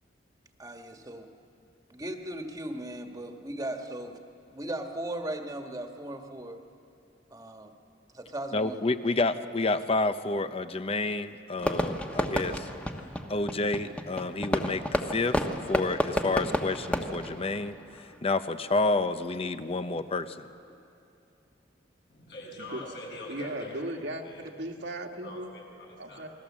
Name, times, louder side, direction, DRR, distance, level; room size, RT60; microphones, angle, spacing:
voice 1, 0.6-1.3 1.9-4.2 4.5-6.6 7.3-7.8 8.1-8.8, right 1 dB, 20° right, 4 dB, 1.6 m, -37 dB
voice 2, 8.5-12.7 13.3-15.4 15.7-17.8 18.2-20.5, left 3 dB, 35° left, 11 dB, 0.8 m, -29 dB
Fireworks, 11.6-18.2, equal, 5° left, 1.3 m, -31 dB
voice 3, 22.1-23.9 24.2-24.5 25.2-26.3, left 1 dB, 65° left, -3 dB, 7.9 m, -43 dB
voice 4, 23.3-25.5 26.0-26.3, right 1 dB, 80° right, 2 dB, 2.1 m, -37 dB
28.5 x 20.5 x 7.4 m, 2.7 s
head